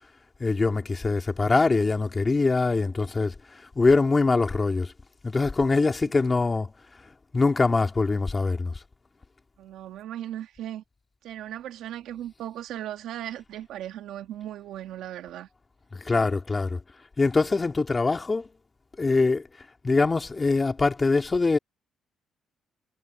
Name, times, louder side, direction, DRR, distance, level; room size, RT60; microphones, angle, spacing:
voice 1, 0.4-3.3 3.7-4.9 5.2-6.7 7.3-8.7 15.9-16.8 17.2-18.5 19.0-19.4 19.8-21.6, left 3 dB, 25° left, 3.0 m, -23 dB
voice 2, 9.6-10.8 11.2-15.5, right 12 dB, 85° right, 1.8 m, -37 dB
cardioid pair, 90°, 0 cm